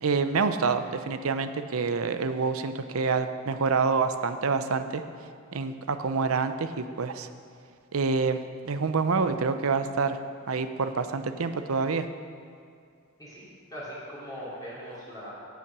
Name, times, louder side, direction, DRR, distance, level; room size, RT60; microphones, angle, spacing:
voice 1, 0.0-5.0 5.5-7.3 7.9-8.4 8.7-10.2 10.5-12.1, right 4 dB, 70° right, 9 dB, 0.6 m, -27 dB
voice 2, 13.7-15.3, equal, 15° left, -9 dB, 3.0 m, -40 dB
16.5 x 5.8 x 6.1 m, 2.3 s
head